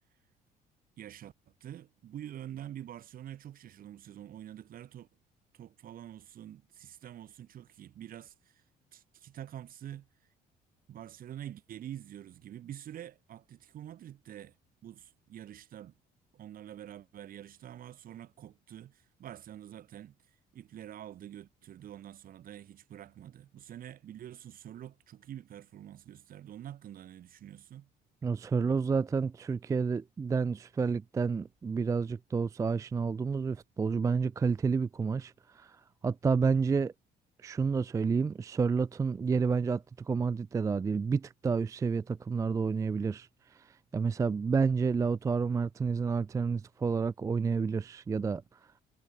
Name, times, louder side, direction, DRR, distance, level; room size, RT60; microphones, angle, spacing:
voice 1, 1.0-5.1 5.5-8.6 8.9-10.1 10.9-14.5 14.8-15.9 16.3-20.1 20.5-27.9, right 11 dB, 60° right, 2.7 m, -46 dB
voice 2, 28.2-35.7 36.0-36.9 37.4-43.3 43.9-48.4, right 5 dB, 20° right, 0.3 m, -29 dB
cardioid pair, 110°, 17 cm